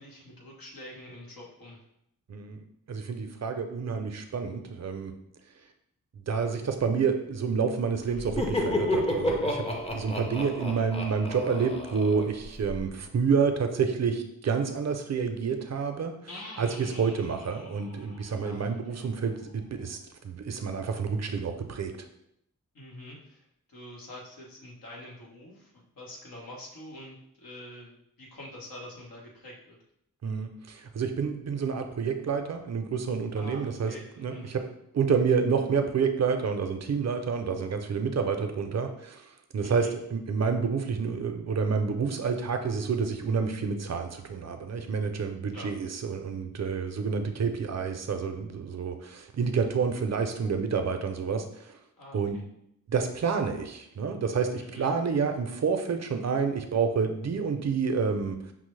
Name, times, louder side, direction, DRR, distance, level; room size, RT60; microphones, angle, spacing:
voice 1, 0.0-1.8 10.6-10.8 18.4-19.1 22.7-23.4 23.7-29.8 33.3-34.6 39.6-39.9 45.5-45.7 52.0-52.4 54.6-54.9, left 1 dB, 90° left, -4 dB, 1.2 m, -46 dB
voice 2, 2.3-2.6 2.9-5.1 6.3-9.7 9.9-20.0 20.2-21.9 30.2-34.6 34.9-39.2 39.5-51.8 52.1-52.4 52.9-58.5, right 5 dB, 50° right, 6 dB, 0.5 m, -29 dB
Laughter, 8.1-12.8, left 1 dB, 20° left, 0.5 m, -31 dB
sound 1, 16.3-19.9, left 2 dB, 45° left, 0.8 m, -48 dB
5.8 x 2.0 x 3.1 m, 0.76 s
wide cardioid pair, 100°, 34 cm